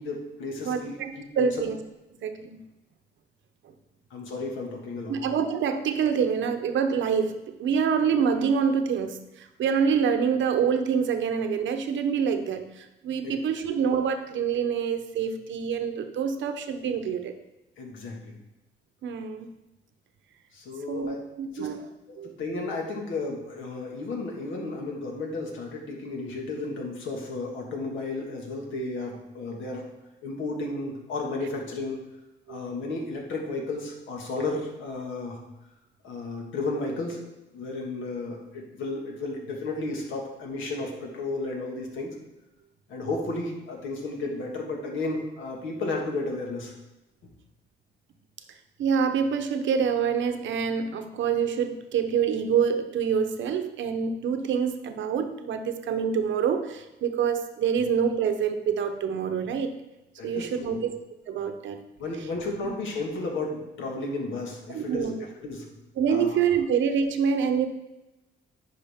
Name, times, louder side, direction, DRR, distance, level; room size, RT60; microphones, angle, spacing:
voice 1, 0.0-0.9 1.4-1.5 4.1-5.2 13.2-13.4 17.8-18.4 20.5-21.2 21.5-21.7 22.2-29.8 30.2-32.0 32.5-35.4 36.0-37.2 37.5-42.1 42.9-46.7 60.2-60.8 62.0-65.7 66.1-66.4, left 2 dB, 80° left, 0 dB, 1.8 m, -33 dB
voice 2, 0.6-1.8 2.2-2.6 5.1-17.3 19.0-19.5 20.9-21.9 22.2-22.3 32.5-32.6 48.8-59.8 60.2-61.0 61.3-61.8 64.7-65.2 66.0-67.7, right 7 dB, 70° right, 7 dB, 0.9 m, -26 dB
10.5 x 4.9 x 3.6 m, 0.98 s
cardioid pair, 90°, 20 cm